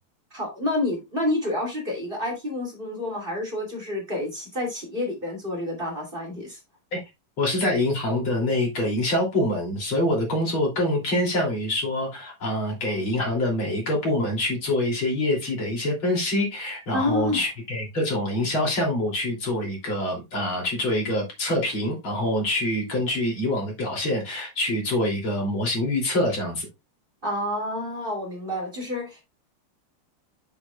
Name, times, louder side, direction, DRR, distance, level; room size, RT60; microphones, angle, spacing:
voice 1, 0.3-6.6 16.9-17.4 27.2-29.2, left 1 dB, 25° right, 2.9 m, -29 dB
voice 2, 7.4-26.7, left 1 dB, 65° left, 3.9 m, -25 dB
8.1 x 7.6 x 2.4 m
omnidirectional pair, 2.4 m